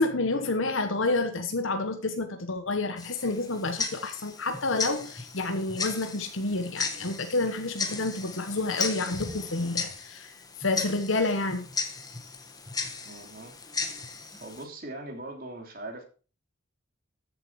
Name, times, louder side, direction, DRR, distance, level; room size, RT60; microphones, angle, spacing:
voice 1, 0.0-10.3 10.6-11.7, left 2 dB, 70° left, 1.2 m, -29 dB
Tick-tock, 3.0-14.7, left 4 dB, 20° left, 1.3 m, -36 dB
voice 2, 13.0-13.6 14.4-16.0, right 2 dB, 45° right, 3.2 m, -40 dB
13.5 x 7.6 x 4.7 m
head